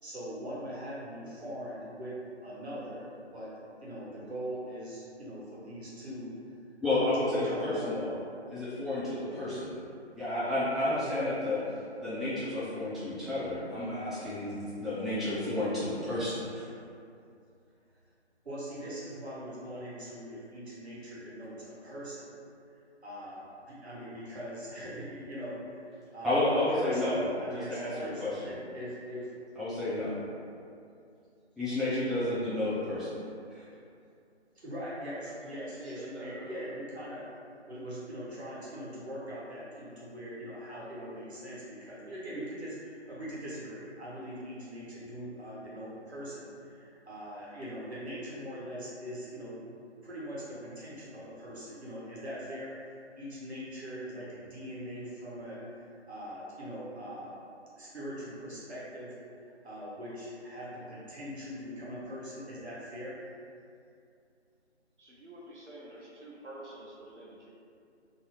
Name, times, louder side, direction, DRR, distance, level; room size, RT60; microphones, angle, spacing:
voice 1, 0.0-6.3 6.8-8.0 18.4-22.3 23.0-29.3 34.5-37.3 37.7-49.6 50.0-57.4 57.8-59.2 59.6-63.2 65.9-66.2 67.1-67.2, equal, 65° right, -7 dB, 1.0 m, -41 dB
voice 2, 6.8-8.1 8.5-9.8 10.1-11.6 12.0-16.6 26.2-27.2 27.5-28.5 29.6-30.1 31.6-33.2 33.5-33.6, left 1 dB, ahead, -13 dB, 0.3 m, -31 dB
voice 3, 35.2-36.7 65.0-67.5, right 1 dB, 90° right, -4 dB, 0.8 m, -47 dB
2.6 x 2.0 x 3.0 m, 2.5 s
figure-of-eight pair, 155°, 35 cm